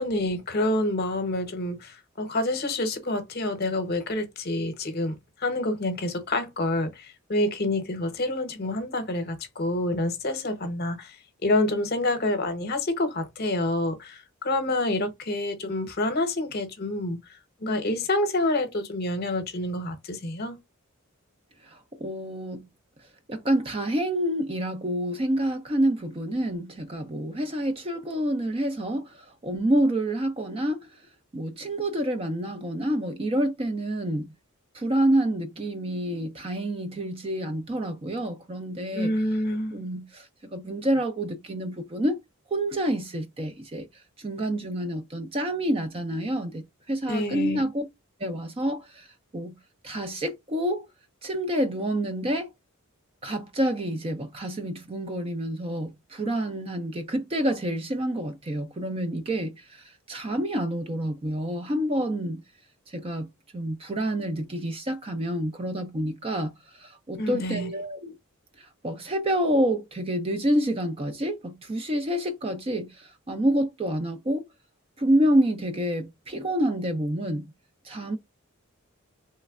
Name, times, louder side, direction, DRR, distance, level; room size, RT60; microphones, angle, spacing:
voice 1, 0.0-11.2 11.4-17.2 17.6-20.6 38.9-39.8 47.1-47.6 67.2-67.7, left 1 dB, 45° left, 0.8 m, -27 dB
voice 2, 21.6-22.7 23.3-30.9 31.3-34.3 34.7-39.1 39.7-42.2 42.5-43.9 44.2-47.8 48.2-49.1 49.3-49.6 49.8-50.9 51.2-52.5 53.2-62.4 62.9-63.3 63.5-68.2 68.6-74.5 75.0-77.5 77.8-78.2, right 1 dB, 25° right, 0.4 m, -28 dB
3.2 x 3.1 x 2.3 m
head